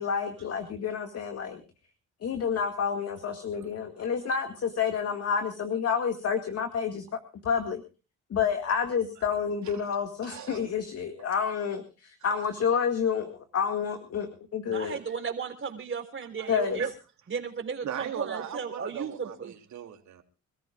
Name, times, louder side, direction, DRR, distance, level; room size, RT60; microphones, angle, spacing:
voice 1, 0.0-1.6 2.2-7.0 7.4-7.8 8.3-15.0 16.5-16.8, left 7 dB, 55° left, 2.1 m, -29 dB
voice 2, 10.2-10.6 14.9-15.0 16.4-16.5 16.8-16.9 17.8-20.2, right 10 dB, 70° right, 3.1 m, -38 dB
voice 3, 14.7-16.9 17.3-19.5, right 6 dB, 40° right, 3.9 m, -34 dB
27.0 x 14.0 x 2.5 m
cardioid pair, 90°, 30 cm